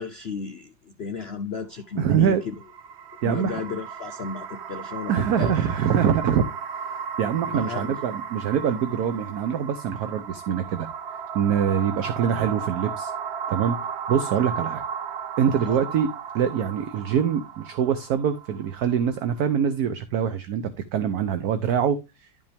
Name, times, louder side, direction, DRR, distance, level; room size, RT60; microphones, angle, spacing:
voice 1, 0.0-2.5 3.2-5.6 7.5-8.0 15.6-15.8, left 5 dB, 70° left, 0.6 m, -34 dB
voice 2, 2.0-2.4 3.2-3.6 5.1-6.4 7.2-10.9 11.3-13.1 13.5-13.8 14.1-14.8 15.4-22.5, right 8 dB, 60° right, 1.2 m, -24 dB
sound 1, 2.4-19.6, right 7 dB, 85° right, 0.5 m, -35 dB
11.5 x 5.4 x 3.4 m
omnidirectional pair, 2.0 m